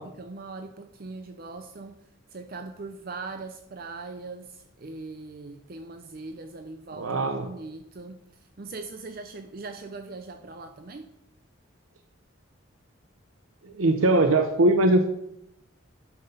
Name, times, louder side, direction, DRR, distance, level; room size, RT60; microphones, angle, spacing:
voice 1, 0.0-2.0 2.3-11.1, right 3 dB, 45° right, 7 dB, 0.5 m, -40 dB
voice 2, 7.0-7.5 13.6-15.1, right 2 dB, 90° right, 7 dB, 0.7 m, -21 dB
10.5 x 5.9 x 5.5 m, 0.81 s
head